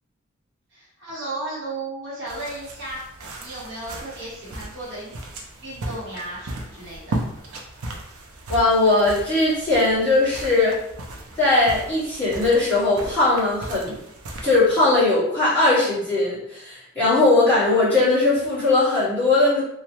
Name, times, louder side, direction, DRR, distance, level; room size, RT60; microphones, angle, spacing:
voice 1, 0.7-5.1 5.6-7.2, right 2 dB, 55° right, -7 dB, 1.0 m, -34 dB
sound 1, 2.3-15.0, right 1 dB, 80° right, 0.5 m, -36 dB
voice 2, 8.5-10.8 11.4-14.0 14.4-19.6, left 2 dB, 5° left, -13 dB, 1.4 m, -19 dB
3.0 x 2.2 x 2.9 m, 0.77 s
head